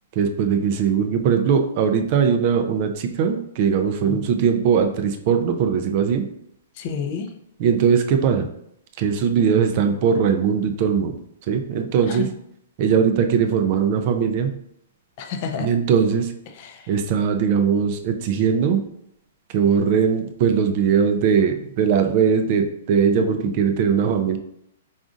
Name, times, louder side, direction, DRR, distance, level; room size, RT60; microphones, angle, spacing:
voice 1, 0.2-6.2 7.6-8.5 9.0-11.2 11.5-12.3 12.8-14.5 15.6-16.3 16.9-18.8 19.5-24.4, right 7 dB, 35° right, 6 dB, 0.4 m, -20 dB
voice 2, 6.8-7.3 12.1-12.3 15.2-15.7 16.5-16.9 23.2-23.6, left 5 dB, 35° left, 6 dB, 0.4 m, -30 dB
5.0 x 3.8 x 2.4 m, 0.75 s
hypercardioid pair, 170°, 0 cm